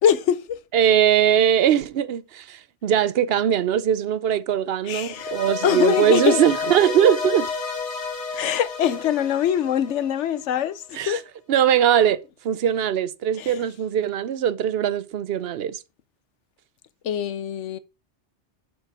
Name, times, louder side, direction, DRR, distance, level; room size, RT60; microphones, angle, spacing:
voice 1, 0.0-0.6 4.8-5.3 5.6-6.4 8.3-11.2 13.4-13.6 17.0-17.8, left 9 dB, 90° left, 1.1 m, -23 dB
voice 2, 0.7-7.5 11.0-11.2 11.5-12.2 12.4-15.8, right 9 dB, 65° right, 0.8 m, -21 dB
sound 1, 5.1-10.4, left 5 dB, 75° left, 2.0 m, -30 dB
7.3 x 5.5 x 4.8 m
omnidirectional pair, 1.2 m